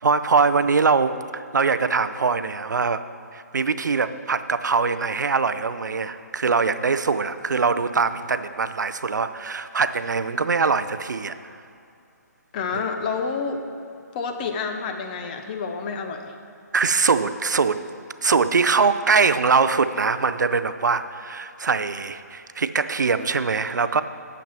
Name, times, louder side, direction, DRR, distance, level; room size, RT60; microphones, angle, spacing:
voice 1, 0.0-3.0 3.3-11.4 16.7-17.8 18.2-24.0, right 5 dB, 80° right, 12 dB, 0.4 m, -22 dB
voice 2, 12.5-13.6 14.1-16.3, left 5 dB, 30° left, 5 dB, 0.7 m, -29 dB
7.1 x 5.9 x 7.4 m, 2.6 s
figure-of-eight pair, 150°, 10 cm